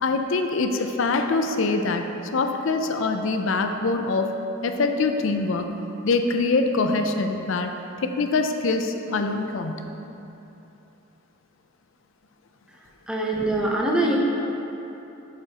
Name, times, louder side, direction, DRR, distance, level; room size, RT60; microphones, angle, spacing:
voice 1, 0.0-2.0 2.3-4.3 4.6-5.7 6.0-7.7 8.0-9.8, left 3 dB, 60° left, 6 dB, 0.4 m, -24 dB
voice 2, 13.1-14.2, right 1 dB, 5° right, -3 dB, 0.6 m, -23 dB
7.8 x 6.8 x 2.9 m, 3.0 s
head